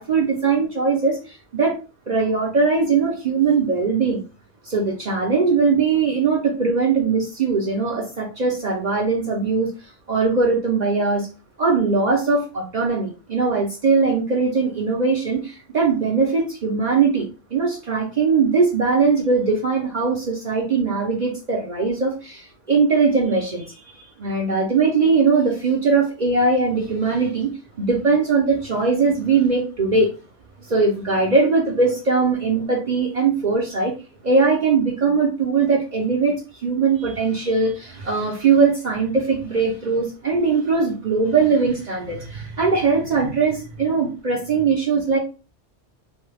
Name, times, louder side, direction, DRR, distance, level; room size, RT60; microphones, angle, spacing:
voice 1, 0.0-1.7 2.1-4.2 4.6-9.7 10.1-11.3 11.6-27.5 27.8-30.1 30.6-33.9 34.2-45.2, right 4 dB, 45° right, 0.7 m, -20 dB
3.0 x 2.3 x 3.3 m
omnidirectional pair, 1.2 m